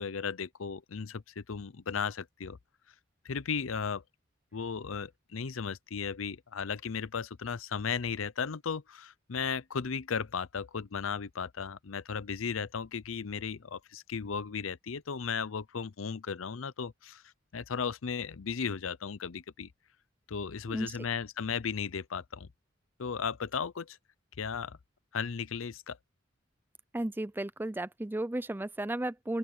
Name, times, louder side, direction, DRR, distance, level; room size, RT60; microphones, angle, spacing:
voice 1, 0.0-2.6 3.2-4.0 4.5-17.2 17.5-19.7 20.3-22.5 23.0-24.0 24.4-24.8 25.1-26.0, left 6 dB, 85° left, 0.7 m, -35 dB
voice 2, 26.9-29.4, right 1 dB, 10° right, 0.5 m, -34 dB
open air
head